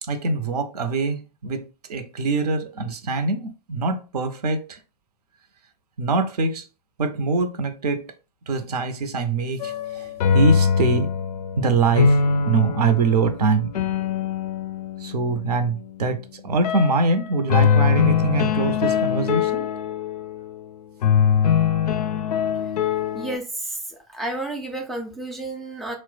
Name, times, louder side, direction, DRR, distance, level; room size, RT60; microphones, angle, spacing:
voice 1, 0.0-4.8 6.0-6.7 7.0-8.1 8.5-11.1 11.6-14.0 15.0-19.7, right 3 dB, 70° right, 0.6 m, -23 dB
sound 1, 9.6-15.6 16.6-17.0 17.5-20.5 21.0-23.4, left 7 dB, 70° left, 0.4 m, -22 dB
voice 2, 23.1-26.0, right 2 dB, ahead, 0.4 m, -31 dB
3.0 x 2.0 x 3.2 m
figure-of-eight pair, 100°, 21 cm